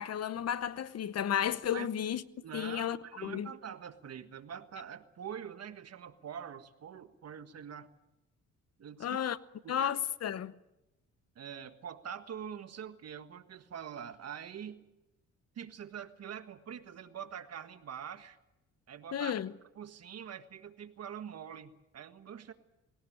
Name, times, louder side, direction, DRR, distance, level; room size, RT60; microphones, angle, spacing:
voice 1, 0.0-2.2 2.5-3.0 3.2-3.5 9.0-9.4 9.7-10.5 19.1-19.5, left 9 dB, 55° left, 1.0 m, -33 dB
voice 2, 2.4-7.9 8.8-9.2 9.6-10.0 11.3-14.9 15.5-18.4 18.9-19.3 19.7-22.5, right 8 dB, 55° right, 1.6 m, -44 dB
20.5 x 18.0 x 8.8 m
cardioid pair, 90°, 30 cm